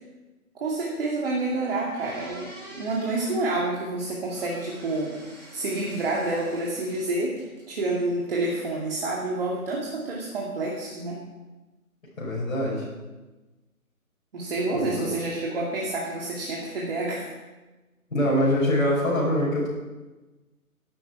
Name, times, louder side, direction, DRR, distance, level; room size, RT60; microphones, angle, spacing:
voice 1, 0.5-2.5 2.8-5.2 5.5-11.2 14.3-17.3, right 2 dB, 40° right, -3 dB, 2.5 m, -28 dB
sound 1, 1.7-3.4 4.3-7.1 7.4-8.1, equal, 5° left, 5.2 m, -46 dB
voice 2, 12.2-12.9 14.7-14.9 18.1-19.7, equal, 55° left, -6 dB, 6.2 m, -23 dB
16.5 x 11.5 x 4.8 m, 1.2 s
figure-of-eight pair, 140°, 44 cm